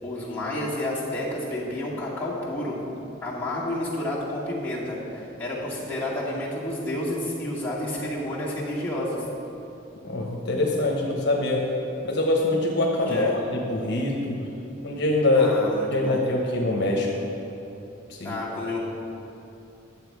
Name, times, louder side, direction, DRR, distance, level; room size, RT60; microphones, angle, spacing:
voice 1, 0.0-2.8 3.2-9.2 13.1-13.3 15.3-16.2 18.2-18.8, left 1 dB, 10° left, -9 dB, 2.1 m, -30 dB
voice 2, 10.0-11.6 12.0-14.4 14.8-15.5 15.9-17.2 18.1-18.4, left 2 dB, 60° left, -1 dB, 1.1 m, -24 dB
10.0 x 7.1 x 4.7 m, 2.9 s
head